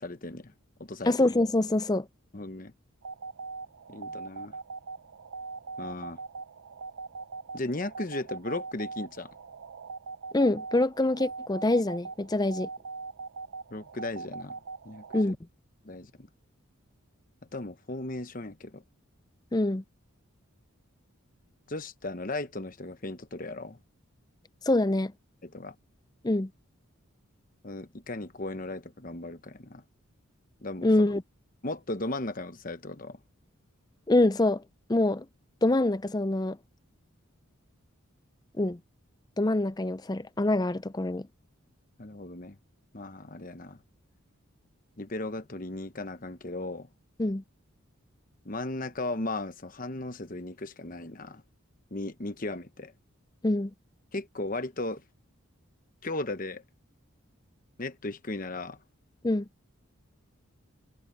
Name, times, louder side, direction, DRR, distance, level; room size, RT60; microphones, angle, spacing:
voice 1, 0.0-0.5 0.8-1.1 2.3-2.7 3.9-4.6 5.8-6.2 7.5-9.3 13.7-14.6 14.8-15.3 15.8-16.3 17.5-18.8 21.7-23.8 25.4-25.7 27.6-29.8 30.6-30.9 31.6-33.2 42.0-42.6 42.9-43.8 45.0-46.9 48.4-51.4 51.9-52.9 54.1-55.0 56.0-56.6 57.8-58.8, left 2 dB, 40° left, 1.0 m, -36 dB
voice 2, 1.1-2.1 10.3-12.7 15.1-15.4 19.5-19.8 24.7-25.1 26.2-26.5 30.8-31.2 34.1-34.6 34.9-35.2 35.6-36.6 38.6-38.8 39.4-41.3 47.2-47.4 53.4-53.7 59.2-59.5, left 2 dB, 20° left, 0.5 m, -25 dB
sound 1, 3.0-15.3, right 4 dB, 70° right, 0.6 m, -41 dB
head